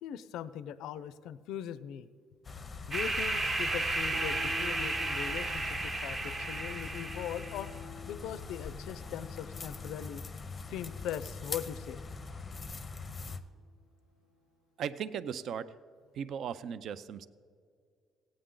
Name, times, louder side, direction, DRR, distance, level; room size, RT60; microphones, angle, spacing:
voice 1, 0.0-2.1 2.9-7.7 8.1-10.3 10.7-12.0, left 9 dB, 80° left, 15 dB, 0.4 m, -40 dB
sound 1, 2.4-13.4, left 4 dB, 25° left, 0.6 m, -43 dB
sound 2, 2.9-7.7, right 2 dB, 25° right, 0.9 m, -33 dB
sound 3, 4.1-14.6, left 1 dB, 70° right, 1.2 m, -51 dB
voice 2, 14.8-15.7 16.1-17.3, right 8 dB, 55° right, 15 dB, 0.4 m, -37 dB
17.0 x 8.7 x 3.8 m, 2.1 s
cardioid pair, 140°, 0 cm